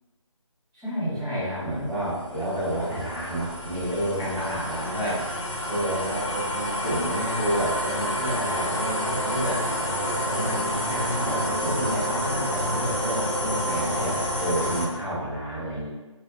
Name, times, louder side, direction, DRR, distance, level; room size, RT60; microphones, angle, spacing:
voice 1, 0.7-5.3 5.7-9.6 10.3-15.9, equal, ahead, -25 dB, 1.0 m, -30 dB
sound 1, 1.4-14.9, equal, 60° left, 0.7 m, -29 dB
2.2 x 2.1 x 3.4 m, 1.1 s
figure-of-eight pair, 170°, 17 cm